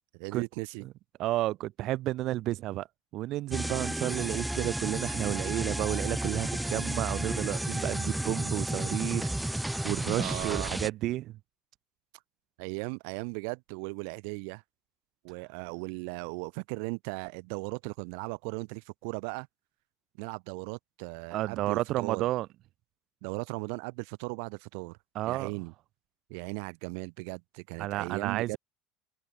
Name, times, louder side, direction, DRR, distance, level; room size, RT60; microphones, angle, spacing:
voice 1, 0.1-0.8 10.1-10.8 12.6-14.6 15.2-19.5 20.2-22.2 23.2-25.0 25.2-25.7 26.3-28.6, right 39 dB, 75° right, 1.5 m, -37 dB
voice 2, 1.2-2.9 3.1-11.3 21.3-22.5 25.1-25.5 27.8-28.6, right 16 dB, 45° right, 1.2 m, -31 dB
sound 1, 3.5-10.9, right 1 dB, 5° right, 0.4 m, -32 dB
cardioid pair, 165°, 0 cm